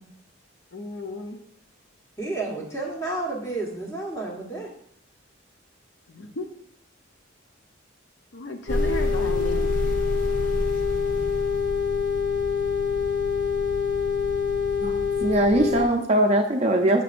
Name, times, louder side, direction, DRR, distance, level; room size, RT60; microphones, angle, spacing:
voice 1, 0.7-1.4 6.1-6.5 8.3-9.7, left 1 dB, 55° left, 4 dB, 0.6 m, -34 dB
voice 2, 2.2-4.7, right 2 dB, 15° left, -2 dB, 1.3 m, -31 dB
sound 1, 8.7-15.9, left 5 dB, 40° left, 0.9 m, -25 dB
voice 3, 14.8-17.0, right 1 dB, 30° right, 4 dB, 0.5 m, -21 dB
6.6 x 5.9 x 2.5 m, 0.66 s
head